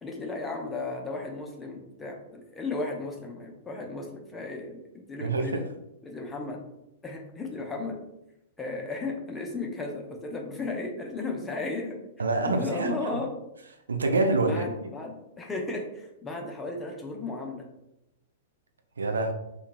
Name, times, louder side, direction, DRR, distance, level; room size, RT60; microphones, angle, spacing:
voice 1, 0.0-5.6 6.0-6.6 7.0-8.0 8.6-12.0 12.4-13.3 14.4-17.6, left 3 dB, 15° left, 1 dB, 0.5 m, -35 dB
voice 2, 5.2-5.6 12.2-13.2 13.9-14.9 19.0-19.3, right 3 dB, 75° right, 4 dB, 0.3 m, -26 dB
2.8 x 2.2 x 2.5 m, 0.87 s
figure-of-eight pair, 105°, 0 cm